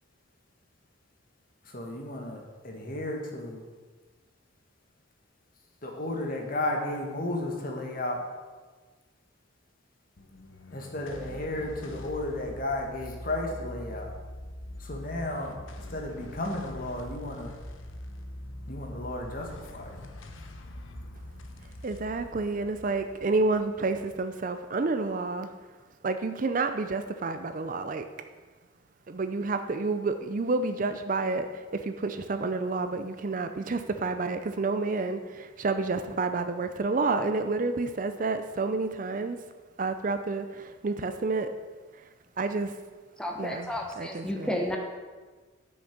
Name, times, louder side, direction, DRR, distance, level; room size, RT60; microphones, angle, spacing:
voice 1, 1.7-3.6 5.8-8.2 10.7-14.1 14.8-15.5 15.9-17.5 18.7-19.9, left 1 dB, 45° left, 1 dB, 1.6 m, -33 dB
sound 1, 10.2-24.8, left 1 dB, 75° left, 0.9 m, -43 dB
voice 2, 21.8-25.5 26.0-28.0 29.1-31.5 31.7-39.4 39.8-41.5 42.4-42.7 43.4-43.7 44.0-44.5, right 3 dB, 40° right, 9 dB, 0.5 m, -29 dB
voice 3, 43.2-44.8, left 1 dB, 5° left, 1 dB, 0.9 m, -32 dB
8.9 x 6.4 x 5.9 m, 1.4 s
head